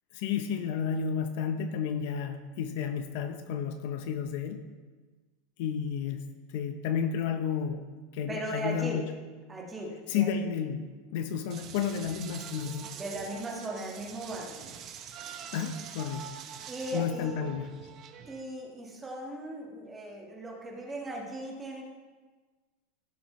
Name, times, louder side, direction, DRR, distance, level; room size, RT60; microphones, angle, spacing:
voice 1, 0.1-4.7 5.6-6.3 6.5-7.8 8.1-9.1 10.1-13.0 15.5-16.3 16.9-17.7, left 7 dB, 50° left, 8 dB, 0.6 m, -32 dB
voice 2, 8.3-9.0 9.5-10.3 12.9-14.6 16.7-17.4 18.3-21.8, right 1 dB, 10° right, -1 dB, 1.4 m, -37 dB
sound 1, 11.5-18.4, right 8 dB, 30° right, 0.7 m, -44 dB
15.5 x 7.2 x 3.1 m, 1.3 s
supercardioid pair, 170°, 0 cm